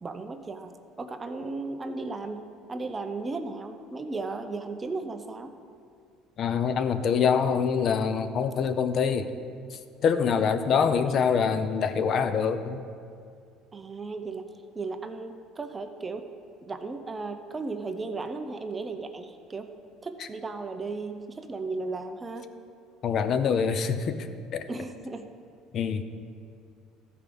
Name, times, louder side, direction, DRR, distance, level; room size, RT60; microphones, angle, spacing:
voice 1, 0.0-5.5 13.7-14.5 14.7-16.2 16.6-19.7 20.0-22.5 24.6-25.3, right 3 dB, 20° right, 7 dB, 0.6 m, -35 dB
voice 2, 6.4-9.3 9.7-12.8 23.0-24.7 25.7-26.0, left 6 dB, 45° left, 10 dB, 0.6 m, -25 dB
14.0 x 4.8 x 5.2 m, 2.4 s
cardioid pair, 125°, 0 cm